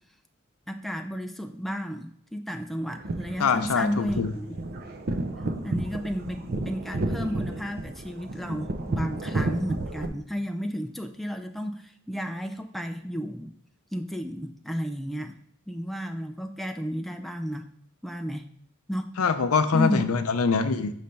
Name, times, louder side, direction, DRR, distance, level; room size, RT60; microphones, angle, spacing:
voice 1, 0.7-4.5 5.6-13.5 13.9-15.3 15.7-17.7 18.0-18.5 18.9-19.2 19.7-20.0, equal, ahead, 5 dB, 0.3 m, -32 dB
sound 1, 2.8-10.1, right 2 dB, 45° right, 0.6 m, -32 dB
voice 2, 3.4-4.3 19.2-20.9, left 5 dB, 85° left, 10 dB, 0.5 m, -23 dB
5.6 x 3.2 x 5.2 m, 0.66 s
head